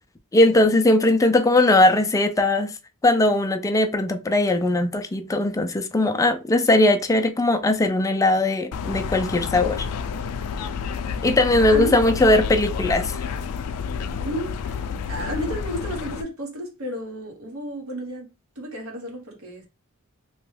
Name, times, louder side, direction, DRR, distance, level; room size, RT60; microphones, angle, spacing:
voice 1, 0.3-2.7 3.0-9.9 11.2-13.2, left 2 dB, 15° left, 0.4 m, -19 dB
sound 1, 8.7-16.2, left 6 dB, 85° left, 0.4 m, -29 dB
voice 2, 11.6-12.0 14.2-18.3 18.6-19.6, equal, 70° right, 1.1 m, -32 dB
3.0 x 2.2 x 3.2 m
head